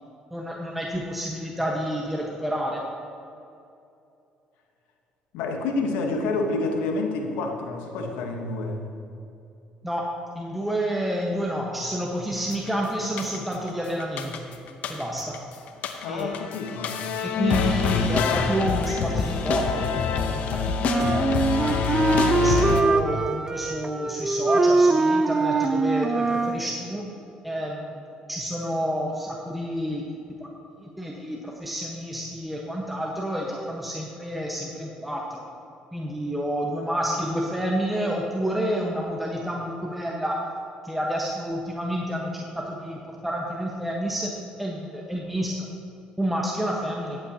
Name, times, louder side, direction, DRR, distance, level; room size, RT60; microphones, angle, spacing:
voice 1, 0.3-2.8 9.8-10.1 10.3-14.5 14.9-15.4 16.1-16.3 17.2-19.9 20.3-21.3 21.6-27.1 27.4-28.0 28.3-30.0 30.4-30.5 30.8-35.4 35.9-40.4 40.8-44.3 44.6-45.7 46.2-47.2, equal, 5° right, -2 dB, 1.1 m, -29 dB
voice 2, 5.3-8.9 16.0-17.0 17.3-17.6, left 3 dB, 85° left, 3 dB, 1.1 m, -28 dB
sound 1, 12.5-12.7 13.2-13.7 14.0-15.4 15.7-22.8, left 6 dB, 70° left, 0.7 m, -26 dB
Wind instrument woodwind instrument, 20.8-26.7, right 3 dB, 25° right, 0.5 m, -22 dB
14.0 x 8.9 x 2.8 m, 2.6 s
supercardioid pair, 80°, 3 cm